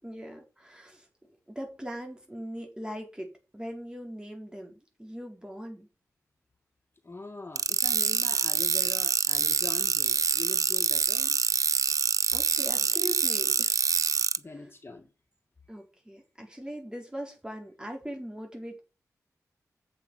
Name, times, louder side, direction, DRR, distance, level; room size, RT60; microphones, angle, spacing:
voice 1, 0.0-1.1 1.5-5.9 12.3-13.7 15.7-18.8, right 1 dB, 15° right, 4.1 m, -40 dB
voice 2, 7.0-11.4 14.4-15.1, left 3 dB, 40° left, 1.8 m, -43 dB
sound 1, 7.6-14.4, right 6 dB, 65° right, 0.5 m, -26 dB
7.7 x 7.3 x 5.5 m
cardioid pair, 55°, 6 cm